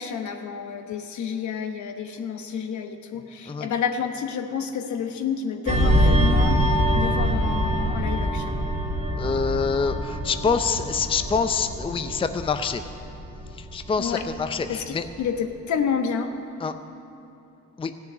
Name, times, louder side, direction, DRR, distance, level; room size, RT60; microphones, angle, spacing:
voice 1, 0.0-6.6 6.9-8.6 14.0-14.3 14.7-16.4, left 6 dB, 70° left, 6 dB, 1.2 m, -29 dB
sound 1, 5.7-14.7 15.0-15.3, equal, 20° right, 1.8 m, -24 dB
voice 2, 9.2-12.8 13.5-15.1 16.6-16.8 17.8-17.9, left 5 dB, 20° left, 9 dB, 0.5 m, -26 dB
15.0 x 6.9 x 9.3 m, 2.7 s
cardioid pair, 90°, 30 cm